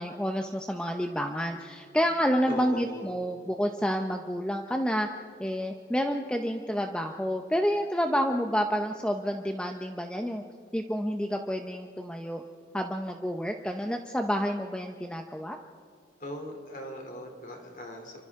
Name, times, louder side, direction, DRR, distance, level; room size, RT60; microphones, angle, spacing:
voice 1, 0.0-5.1 5.4-10.4 10.7-12.4 12.7-15.6, equal, 5° left, 4 dB, 0.7 m, -29 dB
voice 2, 2.5-3.1 16.2-18.3, left 1 dB, 50° left, 3 dB, 3.1 m, -39 dB
30.0 x 25.0 x 3.7 m, 2.3 s
head